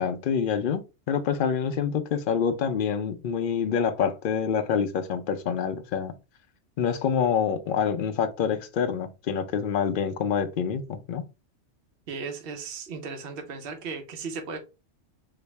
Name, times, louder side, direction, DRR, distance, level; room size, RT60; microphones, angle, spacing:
voice 1, 0.0-6.2 6.8-11.2, left 7 dB, 60° left, 0.5 m, -26 dB
voice 2, 12.1-14.6, right 5 dB, 55° right, 0.9 m, -36 dB
4.1 x 2.0 x 3.1 m
omnidirectional pair, 1.3 m